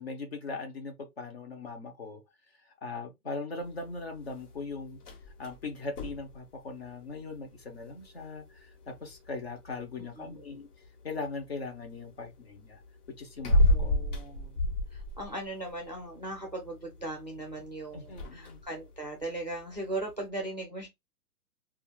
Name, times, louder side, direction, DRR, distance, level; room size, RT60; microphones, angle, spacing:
voice 1, 0.0-2.2 2.6-5.0 5.4-10.7 11.0-12.8 13.2-13.9 17.9-18.6, left 3 dB, 45° left, 0.6 m, -40 dB
sound 1, 3.6-20.3, left 1 dB, 80° left, 1.2 m, -34 dB
voice 2, 13.7-20.9, right 2 dB, 30° right, 0.4 m, -38 dB
2.4 x 2.3 x 3.0 m
hypercardioid pair, 175°, 45 cm